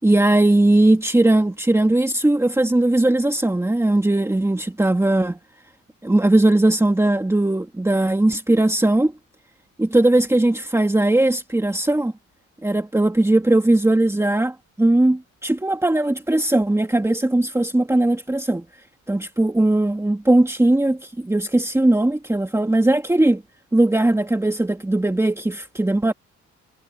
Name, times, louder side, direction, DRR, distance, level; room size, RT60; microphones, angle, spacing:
voice 1, 0.0-5.4 6.0-9.1 9.8-12.1 12.6-18.6 19.1-23.4 23.7-26.1, right 1 dB, 10° right, 2.1 m, -19 dB
cardioid pair, 90°, 30 cm